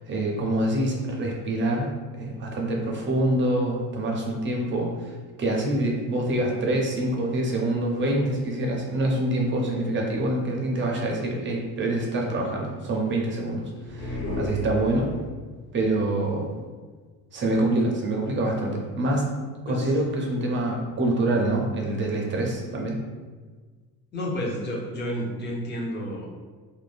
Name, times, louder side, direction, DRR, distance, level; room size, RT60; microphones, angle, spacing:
voice 1, 0.0-5.1 5.4-15.1 15.7-16.5 17.3-19.3 19.7-23.0, right 1 dB, 30° right, -1 dB, 0.4 m, -26 dB
sound 1, 13.8-15.4, left 2 dB, 80° left, 1.2 m, -32 dB
voice 2, 24.1-26.3, equal, 30° left, -3 dB, 0.5 m, -30 dB
2.4 x 2.1 x 3.2 m, 1.4 s
cardioid pair, 155°, 37 cm